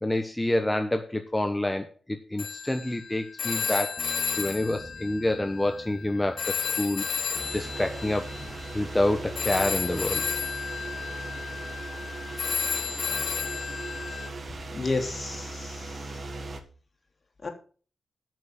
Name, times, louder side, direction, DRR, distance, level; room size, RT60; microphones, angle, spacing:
voice 1, 0.0-4.0 4.4-7.0 7.5-8.3 8.7-10.2, left 1 dB, 15° left, 6 dB, 1.2 m, -27 dB
Telephone, 2.4-6.0 6.4-14.3, left 6 dB, 65° left, 1.3 m, -33 dB
sound 1, 4.0-8.9, right 1 dB, 30° right, 3.3 m, -49 dB
sound 2, 7.3-16.6, right 2 dB, 50° right, 1.8 m, -38 dB
voice 2, 14.7-16.2 17.4-17.5, left 3 dB, 45° left, 3 dB, 3.2 m, -32 dB
9.4 x 6.4 x 7.2 m, 0.40 s
cardioid pair, 60°, 0 cm